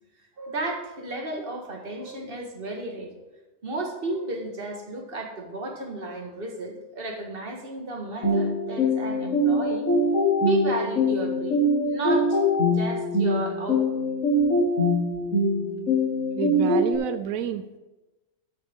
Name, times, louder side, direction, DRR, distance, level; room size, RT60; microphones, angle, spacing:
voice 1, 0.4-3.1 3.6-9.9 10.4-14.0, right 2 dB, 45° right, 2 dB, 1.9 m, -33 dB
sound 1, 8.2-16.9, left 1 dB, 70° left, 2.1 m, -23 dB
voice 2, 16.4-17.8, right 9 dB, 90° right, 11 dB, 1.0 m, -29 dB
13.0 x 8.1 x 3.6 m, 1.1 s
omnidirectional pair, 1.4 m